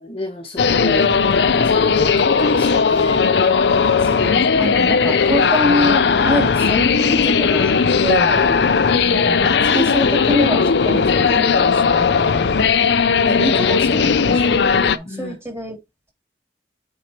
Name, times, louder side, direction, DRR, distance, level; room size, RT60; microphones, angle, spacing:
voice 1, 0.0-3.3 8.3-9.0 15.1-15.4, left 1 dB, 30° left, 1.0 m, -30 dB
sound 1, 0.6-15.0, left 5 dB, 70° left, 0.5 m, -17 dB
voice 2, 4.0-7.7 8.0-8.4 9.0-12.4 13.3-15.8, left 1 dB, 15° right, 3.2 m, -25 dB
8.8 x 4.5 x 3.0 m
head